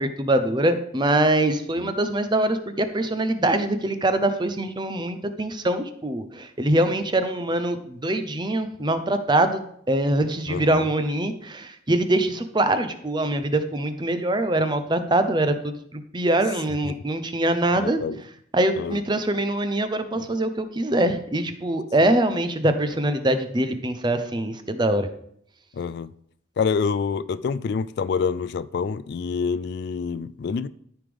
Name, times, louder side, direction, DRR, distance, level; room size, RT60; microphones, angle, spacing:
voice 1, 0.0-9.6 9.9-18.0 18.5-25.1, right 1 dB, 25° right, 0.7 m, -23 dB
voice 2, 10.5-10.9 16.8-17.0 17.8-18.2 18.8-19.0 20.2-20.3 22.0-22.1 25.7-26.1 26.6-30.7, left 5 dB, 55° left, 0.3 m, -27 dB
13.5 x 5.1 x 3.5 m
head